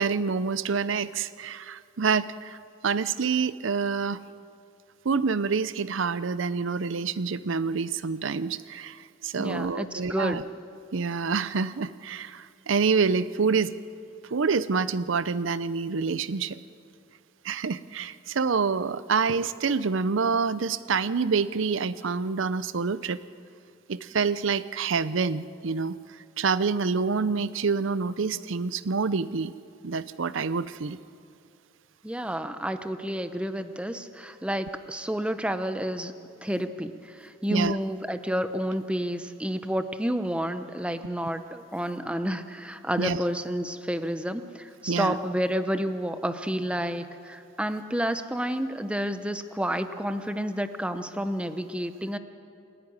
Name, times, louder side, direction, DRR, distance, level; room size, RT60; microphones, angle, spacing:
voice 1, 0.0-2.6 2.8-4.2 5.0-10.4 10.9-13.7 14.3-16.6 17.4-23.2 23.9-26.0 26.4-29.5 29.8-31.0 37.5-37.8 43.0-43.2 44.9-45.2, right 5 dB, 70° right, 16 dB, 0.6 m, -27 dB
voice 2, 9.4-10.4 32.0-36.1 36.4-52.2, equal, 5° right, 9 dB, 0.8 m, -30 dB
28.0 x 11.0 x 9.6 m, 2.5 s
head